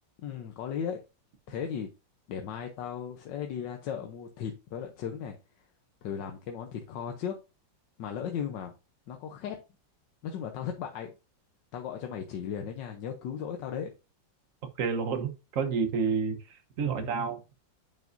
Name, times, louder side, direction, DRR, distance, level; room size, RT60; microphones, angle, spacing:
voice 1, 0.2-1.0 1.5-1.9 2.3-5.4 6.0-7.3 8.0-8.7 9.1-9.6 10.2-11.1 11.7-13.9, left 8 dB, 75° left, 1.4 m, -36 dB
voice 2, 14.8-17.4, right 5 dB, 50° right, 1.2 m, -30 dB
9.2 x 5.4 x 2.6 m
omnidirectional pair, 2.0 m